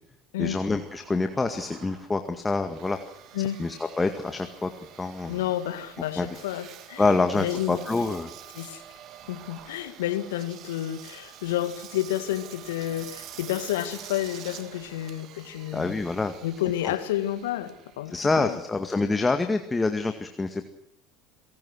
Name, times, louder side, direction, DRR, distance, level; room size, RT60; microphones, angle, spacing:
voice 1, 0.4-3.0 3.6-4.7 5.0-5.4 6.2-6.3 7.0-8.3 15.7-16.3 16.8-16.9 18.1-20.6, left 3 dB, 15° left, 7 dB, 2.0 m, -26 dB
Engine, 0.7-19.2, right 10 dB, 50° right, 2.5 m, -47 dB
voice 2, 5.3-7.8 8.5-8.8 9.3-15.9 16.4-18.6, left 13 dB, 75° left, 11 dB, 2.2 m, -30 dB
28.0 x 18.0 x 6.4 m, 0.81 s
hypercardioid pair, 70°, 0 cm